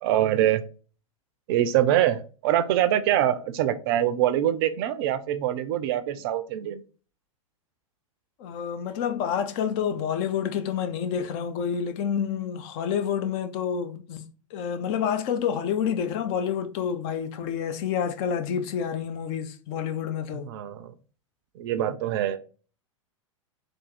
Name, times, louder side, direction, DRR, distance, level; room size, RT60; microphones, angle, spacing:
voice 1, 0.0-0.6 1.5-6.8 20.4-20.9 21.6-22.4, right 12 dB, 45° right, 0.5 m, -24 dB
voice 2, 8.4-20.5, left 8 dB, 40° left, 0.6 m, -28 dB
3.5 x 2.6 x 4.2 m
figure-of-eight pair, 95°, 18 cm